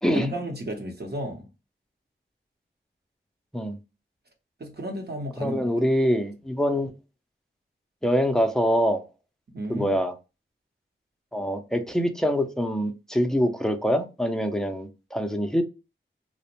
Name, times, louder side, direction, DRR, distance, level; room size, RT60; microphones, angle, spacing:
voice 1, 0.1-1.4 4.6-5.6 9.5-9.9, equal, 50° right, 0.8 m, -32 dB
voice 2, 5.4-6.9 8.0-9.0 9.7-10.1 11.3-15.6, equal, ahead, 0.5 m, -24 dB
2.5 x 2.1 x 2.8 m
wide cardioid pair, 55°, 21 cm